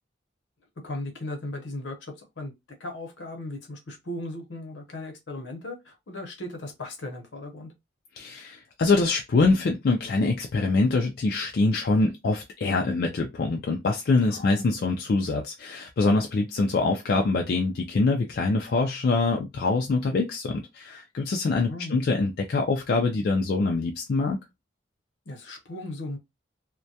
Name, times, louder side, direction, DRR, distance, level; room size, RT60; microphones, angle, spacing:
voice 1, 0.8-2.5 2.8-7.7 14.3-14.5 21.7-22.0 25.3-26.2, left 1 dB, 75° left, 0.8 m, -37 dB
voice 2, 8.2-24.4, left 3 dB, 55° left, 0.3 m, -24 dB
2.2 x 2.1 x 2.7 m
head